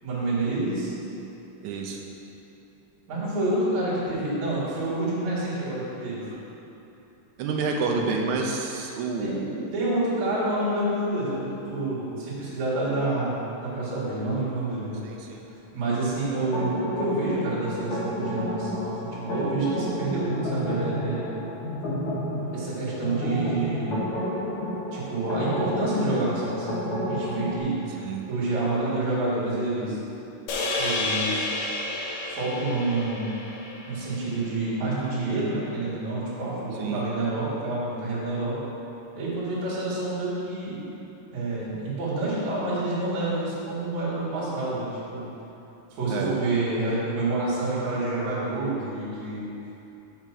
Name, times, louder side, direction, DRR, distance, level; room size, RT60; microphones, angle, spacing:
voice 1, 0.0-0.9 3.1-6.2 9.2-9.3 9.7-15.0 15.7-21.3 22.5-24.0 24.9-30.0 30.8-31.5 32.4-33.3 33.9-38.6 39.1-40.8 41.3-45.3 45.9-49.5, right 2 dB, 60° right, -9 dB, 3.0 m, -28 dB
voice 2, 1.6-2.0 7.4-9.7 15.0-15.4 28.0-28.2 36.8-37.0 46.1-46.3, right 4 dB, 80° right, 1 dB, 1.8 m, -29 dB
sound 1, 16.5-27.6, left 1 dB, 50° left, 2.2 m, -31 dB
sound 2, 30.5-34.9, left 2 dB, 70° left, 2.0 m, -31 dB
6.1 x 5.5 x 5.9 m, 2.9 s
omnidirectional pair, 3.8 m